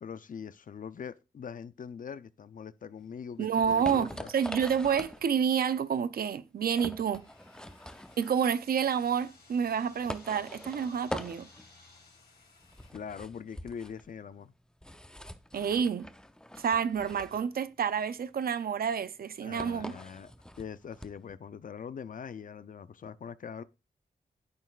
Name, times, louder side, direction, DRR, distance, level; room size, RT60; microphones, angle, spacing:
voice 1, 0.0-4.3 12.9-14.5 19.4-20.3 20.6-23.6, left 7 dB, 60° left, 0.5 m, -42 dB
sound 1, 3.0-21.3, left 1 dB, 5° left, 0.6 m, -44 dB
voice 2, 3.4-7.3 8.2-11.5 15.5-16.1 16.6-20.0, right 7 dB, 70° right, 0.5 m, -29 dB
sound 2, 6.8-12.9, left 3 dB, 80° left, 2.6 m, -58 dB
12.5 x 4.3 x 2.4 m
cardioid pair, 65°, 16 cm